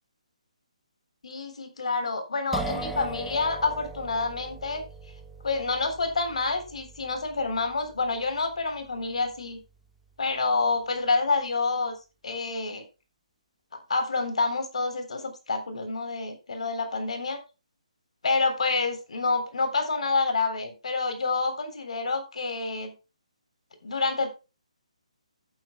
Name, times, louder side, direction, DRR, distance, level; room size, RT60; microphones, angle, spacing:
voice 1, 1.2-4.8 5.4-9.6 10.2-11.9 12.2-12.8 13.9-17.4 18.2-22.9 23.8-24.3, left 3 dB, 60° left, 7 dB, 3.5 m, -28 dB
sound 1, 2.5-10.1, right 3 dB, 5° right, 1.1 m, -40 dB
13.5 x 9.6 x 2.2 m, 0.29 s
figure-of-eight pair, 140°, 4 cm